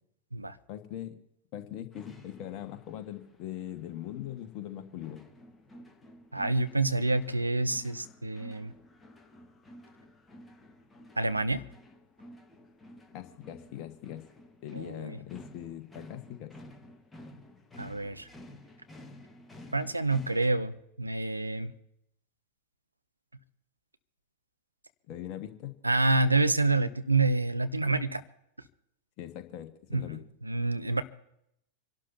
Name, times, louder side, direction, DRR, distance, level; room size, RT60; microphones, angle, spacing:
voice 1, 0.7-1.2 1.5-5.2 13.1-14.2 14.6-16.5 25.1-25.8 29.2-30.2, left 12 dB, 40° left, 1.6 m, -41 dB
sound 1, 1.9-20.5, left 1 dB, 10° left, 1.5 m, -52 dB
voice 2, 6.3-8.7 11.2-11.6 14.7-15.2 17.8-18.3 19.7-21.7 25.8-28.2 29.9-31.0, right 3 dB, 85° right, 0.8 m, -28 dB
27.0 x 12.0 x 2.8 m
figure-of-eight pair, 90°, 0 cm